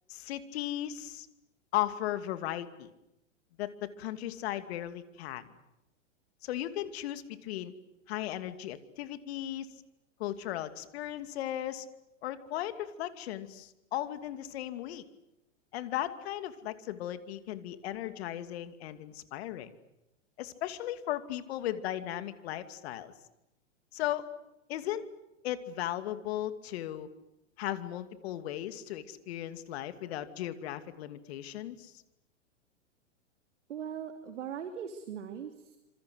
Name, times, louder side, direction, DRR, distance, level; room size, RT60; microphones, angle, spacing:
voice 1, 0.1-1.3 1.7-2.9 3.6-5.4 6.4-7.7 8.1-9.7 10.2-11.9 12.2-15.0 15.7-19.7 20.4-23.1 23.9-24.2 24.7-25.1 25.4-27.1 27.6-31.9, left 13 dB, 55° left, 11 dB, 2.6 m, -36 dB
voice 2, 33.7-35.8, right 8 dB, 75° right, 7 dB, 2.8 m, -40 dB
27.5 x 26.5 x 8.0 m, 0.89 s
hypercardioid pair, 115°, 37 cm